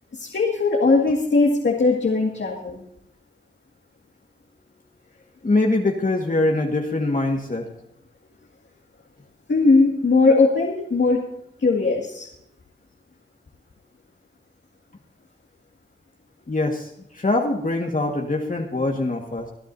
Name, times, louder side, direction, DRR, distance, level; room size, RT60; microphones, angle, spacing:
voice 1, 0.1-2.8 9.5-11.2 11.6-12.3, left 3 dB, 70° left, -1 dB, 2.2 m, -19 dB
voice 2, 5.4-7.7 16.5-19.5, left 2 dB, 45° left, 1 dB, 1.8 m, -23 dB
25.0 x 11.0 x 2.7 m, 0.79 s
wide cardioid pair, 60°, 19 cm